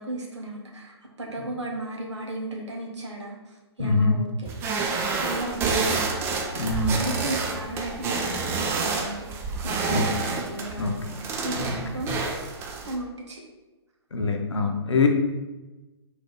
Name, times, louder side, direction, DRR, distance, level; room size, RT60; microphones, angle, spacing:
voice 1, 0.0-4.5 5.1-6.2 6.6-9.3 9.6-12.1 12.8-13.4, right 1 dB, 85° right, -1 dB, 0.9 m, -35 dB
voice 2, 3.8-4.2 6.5-7.0 9.9-10.1 10.8-10.9 11.4-11.8 14.1-15.1, left 3 dB, 85° left, 3 dB, 0.8 m, -24 dB
sound 1, 4.4-12.9, right 4 dB, 15° right, 0.4 m, -29 dB
4.0 x 2.7 x 3.8 m, 1.1 s
hypercardioid pair, 130°, 14 cm